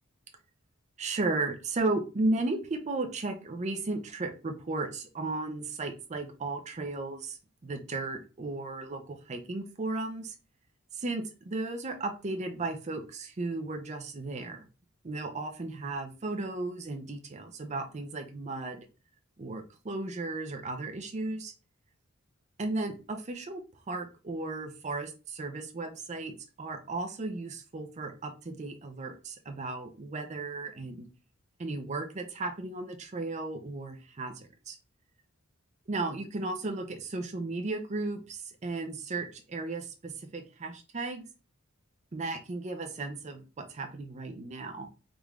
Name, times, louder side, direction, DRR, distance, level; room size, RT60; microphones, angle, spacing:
voice 1, 1.0-10.3 10.9-14.7 15.0-18.9 19.4-21.5 22.6-23.6 23.9-31.1 31.6-34.8 35.9-41.3 42.1-44.9, right 2 dB, 35° right, 4 dB, 0.5 m, -35 dB
3.7 x 3.1 x 2.3 m, 0.33 s
head